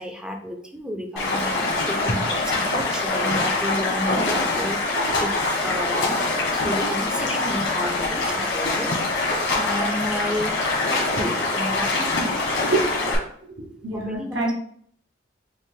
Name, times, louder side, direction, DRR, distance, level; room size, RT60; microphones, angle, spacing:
voice 1, 0.0-6.2 6.5-12.7 13.9-14.5, equal, 5° right, 3 dB, 0.5 m, -32 dB
Stream, 1.2-13.2, left 2 dB, 75° left, 1.5 m, -24 dB
voice 2, 12.6-13.1 13.6-14.5, right 2 dB, 75° right, -1 dB, 0.9 m, -27 dB
5.4 x 2.5 x 3.8 m, 0.63 s
head